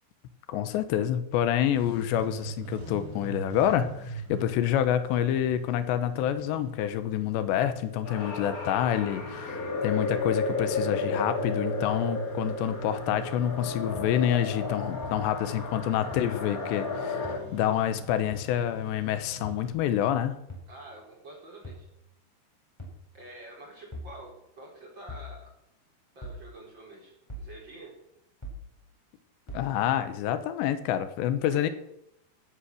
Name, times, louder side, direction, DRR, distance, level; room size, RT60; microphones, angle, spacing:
voice 1, 0.5-17.3 17.5-20.4 29.5-31.7, left 10 dB, 90° left, 11 dB, 3.1 m, -27 dB
Engine starting, 1.7-19.7, right 1 dB, 50° right, 5.2 m, -42 dB
sound 1, 8.0-17.4, left 3 dB, 50° left, 1.0 m, -33 dB
sound 2, 14.0-14.1 15.0-15.1 16.1-16.2 17.2-17.4 18.3-18.5 19.4-19.6 20.5-20.7 21.6-21.9 22.8-23.0 23.9-24.1 25.1-25.3 26.2-26.4 27.3-27.5 28.4-28.6 29.5-29.7, equal, 5° left, 3.7 m, -40 dB
voice 2, 20.7-21.9 23.1-25.5 26.2-27.9 31.4-31.7, right 1 dB, 30° right, -1 dB, 3.9 m, -47 dB
16.0 x 8.7 x 6.5 m, 0.80 s
omnidirectional pair, 5.0 m